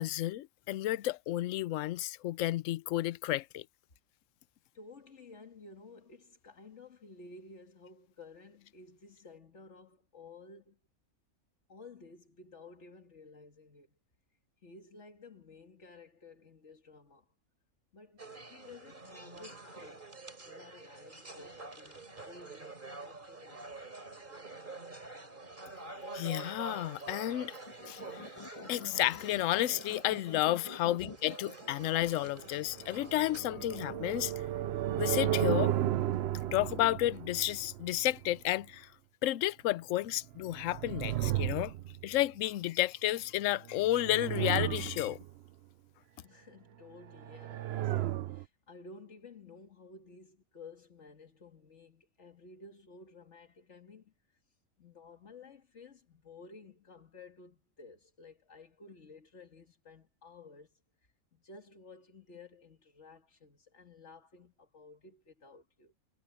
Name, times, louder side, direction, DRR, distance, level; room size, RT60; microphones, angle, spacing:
voice 1, 0.0-3.6 26.1-27.5 27.9-28.2 28.7-34.3 35.0-35.7 36.5-38.9 39.2-41.7 42.0-45.2, left 15 dB, 70° left, 0.9 m, -31 dB
voice 2, 4.7-10.8 11.7-14.0 14.6-17.3 17.9-20.1 20.4-24.1 31.0-31.1 46.2-54.1 54.8-60.8 61.3-65.9, left 3 dB, 50° left, 2.5 m, -54 dB
sound 1, 18.2-33.4, right 3 dB, 35° right, 3.4 m, -47 dB
sound 2, 27.7-34.4, left 3 dB, 20° left, 1.9 m, -49 dB
sound 3, 32.7-38.4 40.3-42.2 43.8-45.3 47.1-48.5, right 13 dB, 65° right, 0.6 m, -34 dB
omnidirectional pair, 1.5 m